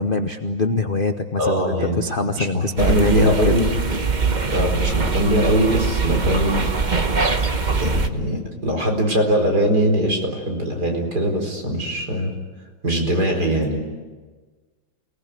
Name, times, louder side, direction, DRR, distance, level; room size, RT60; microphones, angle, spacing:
voice 1, 0.0-3.6, left 3 dB, 40° left, 7 dB, 0.8 m, -23 dB
voice 2, 1.4-2.0 2.3-3.7 4.2-6.7 7.8-12.3 12.8-13.8, equal, 50° right, 2 dB, 5.1 m, -21 dB
sound 1, 2.8-8.1, right 4 dB, 30° right, 0.9 m, -22 dB
29.0 x 19.5 x 9.2 m, 1.4 s
omnidirectional pair, 2.3 m